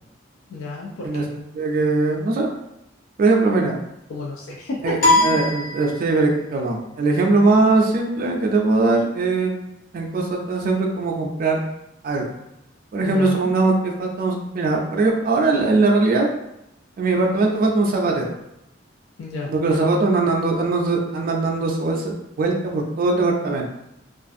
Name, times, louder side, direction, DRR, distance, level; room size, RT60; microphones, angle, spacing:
voice 1, 0.5-1.3 3.5-3.6 4.1-5.4 13.0-13.5 19.2-19.5, left 2 dB, 90° left, -2 dB, 0.4 m, -32 dB
voice 2, 1.5-2.5 3.2-3.7 4.8-9.5 9.9-11.6 12.0-12.2 12.9-16.3 17.0-18.2 19.5-22.0 22.4-23.7, right 3 dB, 45° right, 0 dB, 0.3 m, -20 dB
sound 1, 5.0-6.5, left 2 dB, 50° left, 0.7 m, -20 dB
2.4 x 2.4 x 2.5 m, 0.85 s
head